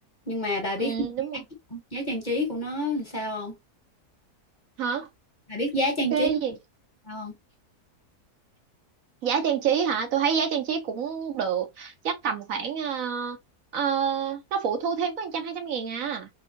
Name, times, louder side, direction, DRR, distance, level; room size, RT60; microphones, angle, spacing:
voice 1, 0.3-1.1 1.7-3.5 5.5-6.3 7.0-7.3, left 1 dB, 35° left, 1.1 m, -28 dB
voice 2, 0.8-1.4 4.8-5.1 6.1-6.6 9.2-13.4 13.7-16.3, right 7 dB, 65° right, 1.1 m, -27 dB
3.6 x 3.2 x 2.6 m
omnidirectional pair, 1.6 m